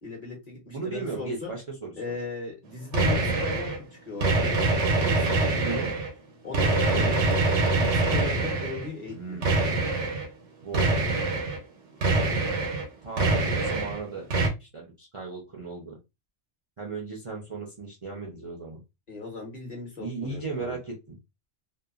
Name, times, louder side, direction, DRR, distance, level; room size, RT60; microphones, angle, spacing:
voice 1, 0.0-1.5 1.9-4.6 5.0-5.8 6.4-7.5 7.7-9.4 19.1-20.7, left 3 dB, 40° left, -1 dB, 1.1 m, -37 dB
voice 2, 0.7-2.1 5.6-5.9 6.9-7.2 9.1-9.5 10.6-11.0 13.0-14.3 14.6-16.0 16.8-18.8 20.0-21.2, right 4 dB, 35° right, -3 dB, 0.5 m, -36 dB
sound 1, 2.9-3.8 4.2-6.1 6.5-8.9 9.4-10.3 10.7-11.6 12.0-12.9 13.2-14.0 14.3-14.5, right 3 dB, 85° right, 1.1 m, -24 dB
2.8 x 2.2 x 2.4 m, 0.24 s
omnidirectional pair, 1.2 m